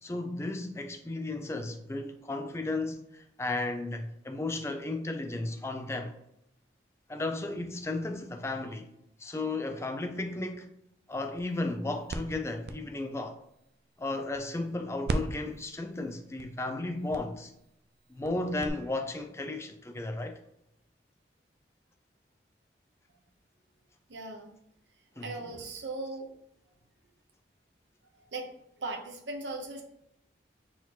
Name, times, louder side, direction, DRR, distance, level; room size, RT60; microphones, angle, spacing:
voice 1, 0.0-6.1 7.1-8.9 9.2-10.7 11.1-13.4 14.0-17.5 18.1-20.4 25.2-25.3, left 2 dB, 15° left, 0.4 m, -34 dB
sound 1, 11.1-14.7 15.0-18.7, right 2 dB, 60° right, 0.4 m, -39 dB
voice 2, 24.1-24.5 25.2-26.3 28.3-28.5 28.8-29.8, right 2 dB, 80° right, 0.9 m, -38 dB
4.1 x 2.9 x 4.1 m
head